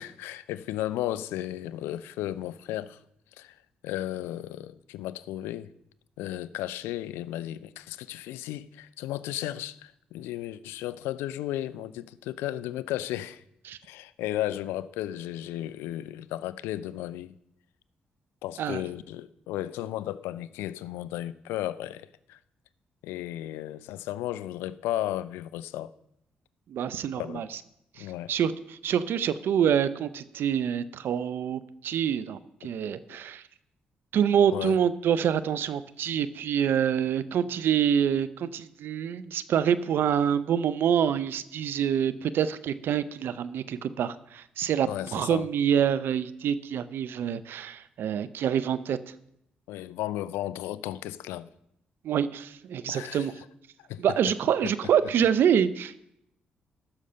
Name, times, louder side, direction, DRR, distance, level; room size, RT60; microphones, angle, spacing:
voice 1, 0.0-3.0 3.4-3.5 3.8-5.7 6.2-13.4 13.8-17.3 18.4-22.4 23.0-25.9 27.2-27.5 28.0-28.3 33.1-33.2 34.5-34.8 44.9-45.5 49.7-51.5 52.9-53.3 53.9-54.0 54.6-54.7, left 13 dB, 85° left, 0.4 m, -34 dB
voice 2, 26.7-27.6 28.0-33.4 34.1-49.0 52.0-53.3 54.0-56.0, right 8 dB, 70° right, 0.6 m, -26 dB
14.5 x 6.5 x 5.5 m
supercardioid pair, 50°, 4 cm